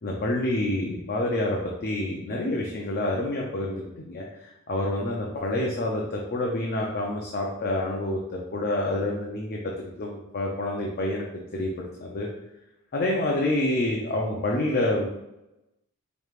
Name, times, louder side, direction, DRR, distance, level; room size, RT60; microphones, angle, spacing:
voice 1, 0.0-11.3 11.5-12.3 12.9-15.1, left 1 dB, 45° left, -2 dB, 0.5 m, -28 dB
5.1 x 3.1 x 2.4 m, 0.92 s
head